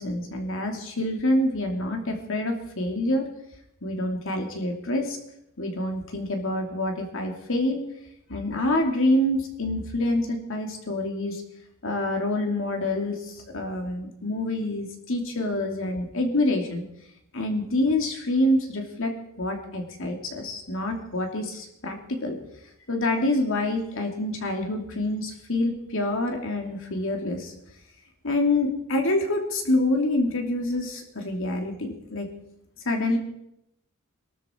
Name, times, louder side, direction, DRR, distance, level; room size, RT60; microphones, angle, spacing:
voice 1, 0.0-3.3 3.8-5.2 5.6-7.8 8.3-11.4 11.8-16.8 17.3-22.4 22.9-27.5 28.2-32.3 32.8-33.2, left 1 dB, 65° left, 3 dB, 2.9 m, -26 dB
22.5 x 12.5 x 4.6 m, 0.81 s
head